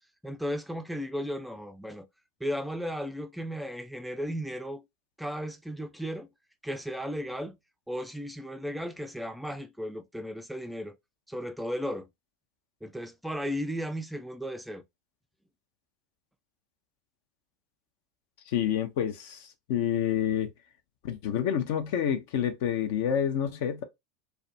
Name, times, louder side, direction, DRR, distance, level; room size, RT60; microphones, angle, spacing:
voice 1, 0.2-2.1 2.4-4.8 5.2-6.3 6.6-7.6 7.9-11.0 11.3-12.1 12.8-14.8, equal, ahead, 0.4 m, -35 dB
voice 2, 18.5-19.4 19.7-20.5 21.0-23.8, left 9 dB, 60° left, 0.6 m, -28 dB
2.4 x 2.2 x 2.5 m
hypercardioid pair, 85°, 0 cm